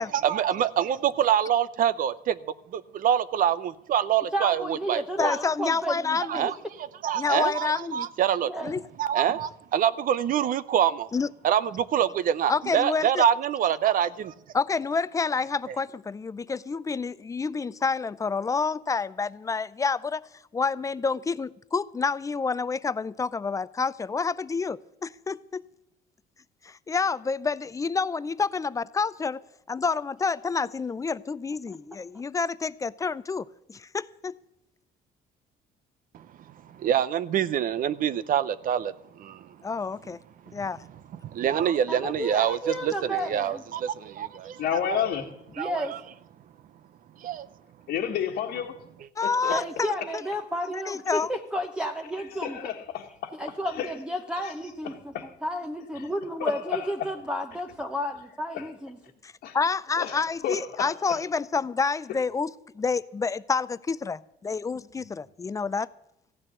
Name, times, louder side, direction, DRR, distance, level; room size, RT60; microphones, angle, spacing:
voice 1, 0.0-2.4 2.7-5.3 6.3-6.5 7.0-8.5 9.0-11.1 11.4-14.3 15.7-15.8 36.1-36.3 36.7-39.5 41.2-45.0 45.6-46.0 47.2-47.5, right 9 dB, 55° right, 0.6 m, -26 dB
voice 2, 4.3-6.2 8.5-8.7 31.7-31.8 41.9-43.6 44.4-44.5 45.6-45.9 49.5-52.7 53.3-55.1 55.4-59.0, equal, 5° right, 0.9 m, -32 dB
voice 3, 5.2-6.5 7.2-8.1 8.6-8.8 11.1-11.3 12.5-13.2 14.5-20.3 20.5-25.6 26.6-29.4 29.7-34.3 39.6-40.2 40.5-40.8 49.2-50.2 50.7-51.3 59.2-65.9, left 4 dB, 20° left, 0.4 m, -28 dB
voice 4, 44.6-45.3 47.9-48.8 49.2-49.5 52.4-53.3 53.8-53.9 54.4-54.5 54.8-55.3 56.0-56.1 56.4-57.1 58.5-58.7 59.4-59.6 60.0-61.2, left 9 dB, 75° left, 1.5 m, -31 dB
15.0 x 6.5 x 9.8 m
cardioid pair, 110°, 17 cm